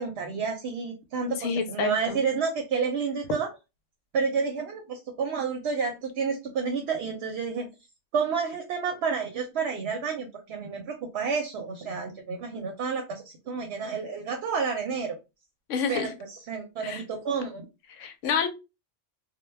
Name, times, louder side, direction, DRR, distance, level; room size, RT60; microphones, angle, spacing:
voice 1, 0.0-3.5 4.1-7.7 8.1-15.2 15.9-17.7, right 5 dB, 70° right, 4 dB, 0.8 m, -30 dB
voice 2, 1.4-2.2 15.7-16.1 16.8-17.0 17.9-18.5, left 6 dB, 85° left, 8 dB, 0.9 m, -28 dB
2.2 x 2.2 x 3.1 m, 0.26 s
omnidirectional pair, 1.2 m